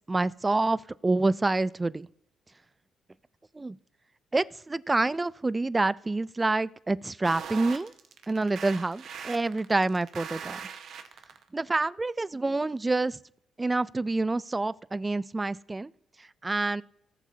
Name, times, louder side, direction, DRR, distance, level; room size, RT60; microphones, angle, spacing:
voice 1, 0.1-2.1 3.5-3.8 4.3-7.9 8.3-10.6 11.5-13.2 13.6-15.9 16.4-16.8, right 2 dB, 20° right, 20 dB, 0.3 m, -27 dB
sound 1, 7.2-11.4, right 7 dB, 65° right, 0.9 m, -40 dB
18.5 x 7.3 x 2.7 m, 0.79 s
cardioid pair, 90°, 0 cm